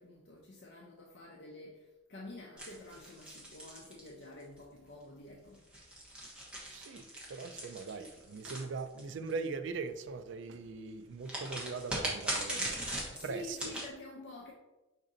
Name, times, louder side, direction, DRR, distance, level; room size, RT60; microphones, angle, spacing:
voice 1, 0.0-5.6 13.1-14.5, left 2 dB, 55° left, 0.6 m, -49 dB
sound 1, 2.6-4.6 5.5-9.3 11.2-13.9, right 1 dB, 5° right, 1.0 m, -40 dB
voice 2, 6.7-12.9 13.2-13.6, right 4 dB, 65° right, 0.4 m, -41 dB
5.1 x 2.7 x 3.8 m
head